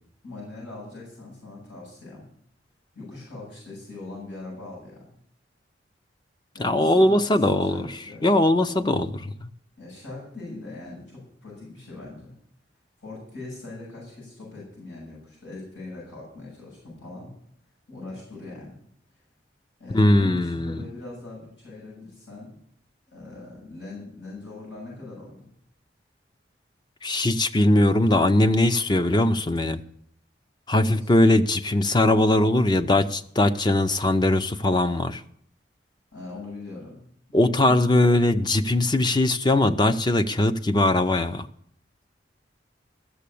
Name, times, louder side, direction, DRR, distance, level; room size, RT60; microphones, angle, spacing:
voice 1, 0.2-2.2 2.9-5.0 6.5-8.3 8.7-9.0 9.8-12.3 13.0-17.3 17.9-18.7 19.8-22.6 23.1-25.5 30.7-31.1 36.1-37.0 37.3-38.1, left 2 dB, 90° left, -6 dB, 7.5 m, -41 dB
voice 2, 6.6-7.9 8.2-9.1 19.9-20.9 27.0-29.8 30.7-35.2 37.3-41.5, left 1 dB, 25° left, 10 dB, 0.5 m, -20 dB
14.0 x 6.9 x 8.4 m, 0.66 s
head